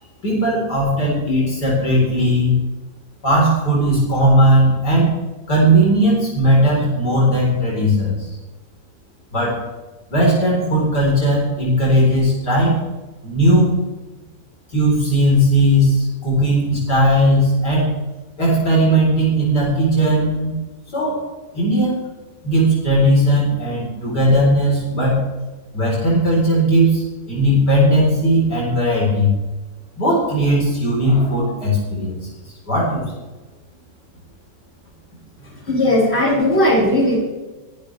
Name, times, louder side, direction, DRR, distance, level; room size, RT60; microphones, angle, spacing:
voice 1, 0.2-2.5 3.2-5.2 5.5-8.1 9.3-9.6 10.1-12.8 13.2-13.7 14.7-17.9 18.4-20.5 20.9-21.2 21.5-22.0 22.4-25.2 25.7-27.0 27.3-29.4 30.0-32.1 32.7-33.0, equal, 60° left, -4 dB, 5.2 m, -17 dB
voice 2, 35.7-37.2, left 1 dB, 35° left, -4 dB, 6.0 m, -16 dB
23.0 x 12.0 x 3.5 m, 1.2 s
omnidirectional pair, 2.0 m